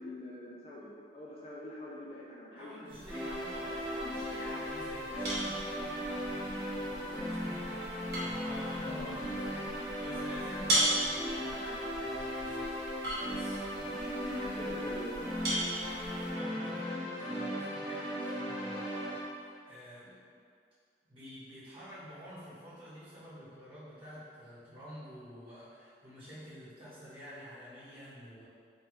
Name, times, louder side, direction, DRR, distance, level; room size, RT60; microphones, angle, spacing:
voice 1, 0.0-3.2 8.8-9.1 14.2-15.2, left 1 dB, 35° left, -5 dB, 0.3 m, -44 dB
voice 2, 2.5-12.7 12.9-15.0 16.3-20.2 21.1-28.4, equal, 30° right, -12 dB, 1.4 m, -49 dB
sound 1, 2.9-16.3, right 1 dB, 65° right, 0.9 m, -38 dB
sound 2, 3.1-19.2, equal, 5° right, 0.7 m, -37 dB
3.0 x 2.6 x 3.2 m, 2.2 s
head